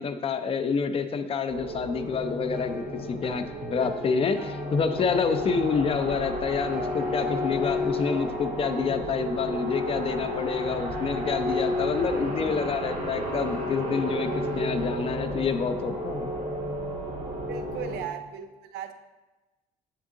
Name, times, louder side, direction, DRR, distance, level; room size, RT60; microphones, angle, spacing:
voice 1, 0.0-16.3, left 5 dB, 35° left, 9 dB, 0.5 m, -28 dB
sound 1, 1.5-18.0, left 1 dB, 50° right, 1.8 m, -31 dB
sound 2, 2.2-8.9, left 1 dB, 5° right, 1.1 m, -43 dB
voice 2, 17.5-18.9, right 9 dB, 80° right, 8 dB, 0.6 m, -37 dB
7.8 x 3.7 x 3.7 m, 1.1 s
cardioid pair, 110°, 17 cm